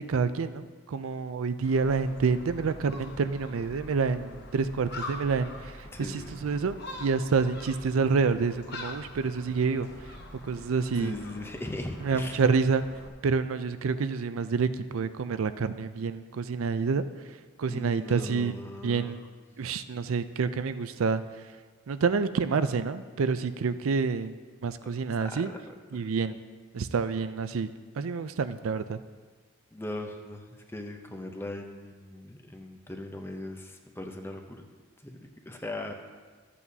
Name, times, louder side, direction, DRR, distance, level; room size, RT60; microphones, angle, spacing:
voice 1, 0.0-5.5 6.1-9.9 10.5-11.1 12.0-12.8 13.2-17.0 17.6-18.5 18.8-19.2 19.6-21.2 21.9-24.3 24.6-25.5 25.9-26.4 26.7-27.7 28.0-29.0, right 5 dB, 85° right, 12 dB, 0.4 m, -28 dB
Gull seagull, 1.6-13.1, left 2 dB, 55° left, 0.9 m, -44 dB
voice 2, 5.9-6.5 10.9-12.4 17.7-19.2 25.2-25.6 25.9-26.1 29.7-34.7 35.0-35.9, left 1 dB, 10° left, 4 dB, 0.6 m, -39 dB
14.0 x 8.3 x 2.7 m, 1.4 s
head